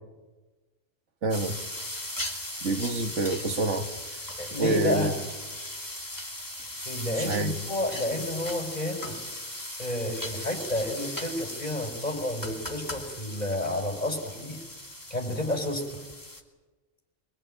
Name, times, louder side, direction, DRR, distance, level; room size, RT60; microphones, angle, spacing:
voice 1, 1.2-1.6 2.6-3.9 4.6-5.1 7.2-7.5, right 3 dB, 80° right, 6 dB, 1.8 m, -27 dB
sound 1, 1.3-16.4, left 1 dB, 15° left, 2.6 m, -38 dB
voice 2, 4.4-5.1 6.8-9.2 9.8-14.6 15.1-16.0, left 1 dB, 35° left, 2 dB, 4.9 m, -30 dB
24.5 x 22.0 x 8.9 m, 1.2 s
omnidirectional pair, 1.2 m